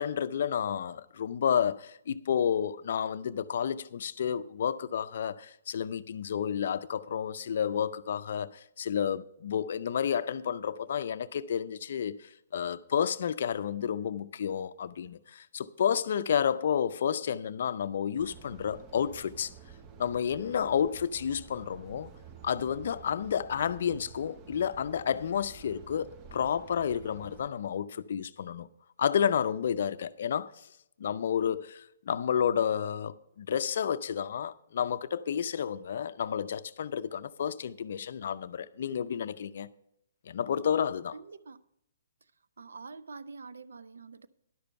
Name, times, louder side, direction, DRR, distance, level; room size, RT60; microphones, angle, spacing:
voice 1, 0.0-19.5 20.0-22.1 22.4-28.7 29.0-30.7 31.0-39.7 40.3-41.1, left 8 dB, 60° left, 0.5 m, -31 dB
sound 1, 18.2-27.5, right 7 dB, 25° right, 0.7 m, -51 dB
voice 2, 41.1-41.6 42.6-44.3, right 4 dB, 85° right, 0.6 m, -46 dB
11.0 x 6.9 x 5.6 m
hypercardioid pair, 150°, 0 cm